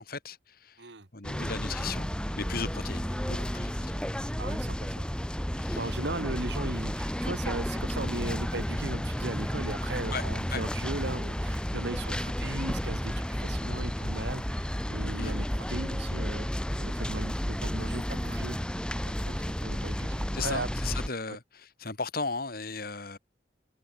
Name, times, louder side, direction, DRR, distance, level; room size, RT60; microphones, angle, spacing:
voice 1, 0.0-0.8 1.1-2.1 2.4-4.0 5.5-5.9 10.1-10.3 10.5-10.6 15.2-15.3 20.3-23.2, left 4 dB, 55° left, 2.3 m, -36 dB
sound 1, 1.2-21.1, equal, 5° left, 1.0 m, -32 dB
voice 2, 4.4-5.2 5.8-16.5 16.8-20.7, right 2 dB, 70° right, 1.8 m, -38 dB
head